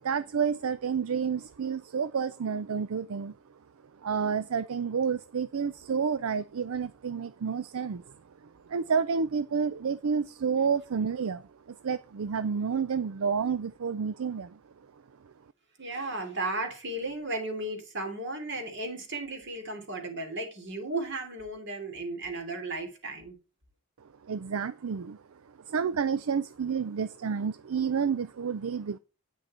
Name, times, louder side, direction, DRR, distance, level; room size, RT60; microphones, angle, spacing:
voice 1, 0.0-3.4 3.9-8.1 8.4-14.6 15.2-15.3 24.2-29.0, right 6 dB, 70° right, 0.5 m, -30 dB
voice 2, 15.8-23.4, right 2 dB, 50° right, 3.0 m, -35 dB
9.4 x 6.2 x 4.4 m
head